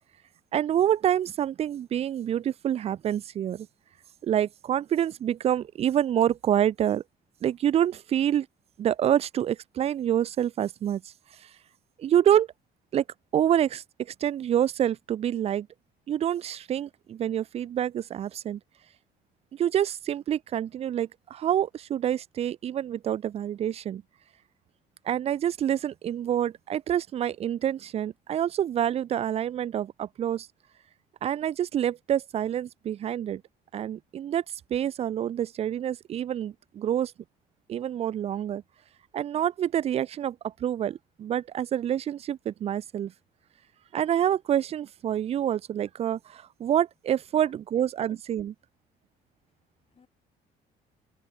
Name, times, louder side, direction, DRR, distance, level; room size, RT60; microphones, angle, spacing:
voice 1, 0.5-3.7 4.2-7.0 7.4-8.5 8.8-11.1 11.4-11.5 12.0-12.5 12.9-13.0 13.3-15.7 16.1-18.6 19.5-24.0 25.1-30.5 31.2-33.4 33.7-34.4 34.7-37.1 37.7-38.6 39.1-43.1 43.9-48.5, right 10 dB, 40° right, 0.4 m, -27 dB
voice 2, 47.4-48.2 49.5-50.1, left 6 dB, 35° left, 4.1 m, -61 dB
cardioid pair, 110°, 17 cm